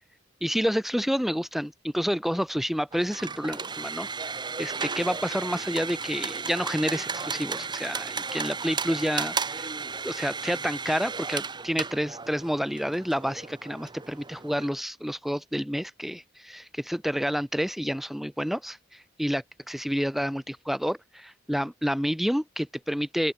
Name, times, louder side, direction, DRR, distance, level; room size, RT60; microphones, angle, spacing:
voice 1, 0.4-4.1 4.6-9.7 10.0-23.3, equal, ahead, 1.5 m, -29 dB
sound 1, 2.9-14.7, right 5 dB, 25° right, 0.9 m, -34 dB
open air
head